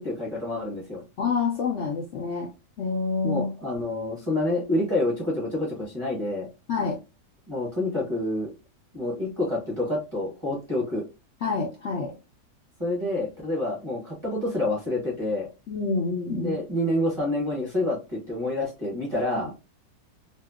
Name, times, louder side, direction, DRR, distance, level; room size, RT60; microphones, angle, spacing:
voice 1, 0.0-1.0 3.2-6.5 7.5-8.5 8.9-11.0 12.8-15.5 16.3-19.5, left 1 dB, 20° right, -6 dB, 1.0 m, -28 dB
voice 2, 1.2-2.5 2.8-3.5 6.7-6.9 11.4-12.1 15.7-16.5 19.4-19.5, left 4 dB, 60° left, -1 dB, 0.8 m, -27 dB
2.7 x 2.3 x 2.3 m, 0.28 s
omnidirectional pair, 1.6 m